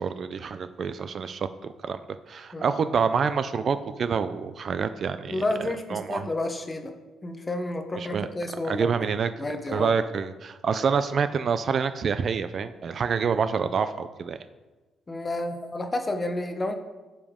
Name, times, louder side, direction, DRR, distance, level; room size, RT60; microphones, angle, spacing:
voice 1, 0.0-2.0 2.3-6.2 8.0-8.3 8.6-9.3 9.7-14.4, right 6 dB, 40° right, 11 dB, 0.3 m, -27 dB
voice 2, 5.3-6.9 7.2-9.1 9.4-9.9 15.1-16.8, left 2 dB, 15° left, 6 dB, 0.8 m, -30 dB
14.5 x 5.2 x 3.6 m, 1.2 s
cardioid pair, 155°, 0 cm